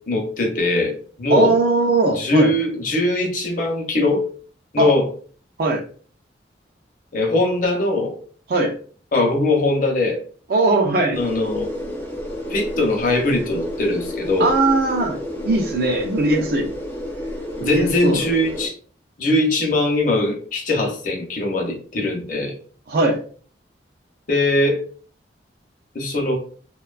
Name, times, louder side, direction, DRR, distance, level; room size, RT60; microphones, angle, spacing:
voice 1, 0.1-1.6 2.1-4.2 4.7-5.1 7.1-8.2 9.1-10.2 11.1-11.7 12.5-14.5 17.7-18.7 19.2-22.5 24.3-24.8 25.9-26.3, left 2 dB, 50° left, 1 dB, 0.7 m, -21 dB
voice 2, 1.3-2.5 4.8-4.9 5.6-5.8 8.5-8.7 10.5-11.2 14.4-15.2 15.5-16.7 17.6-18.2 22.9-23.2, right 2 dB, 55° right, 2 dB, 0.4 m, -19 dB
sound 1, 11.1-18.7, left 1 dB, 10° left, 0.4 m, -30 dB
2.5 x 2.2 x 2.3 m, 0.43 s
head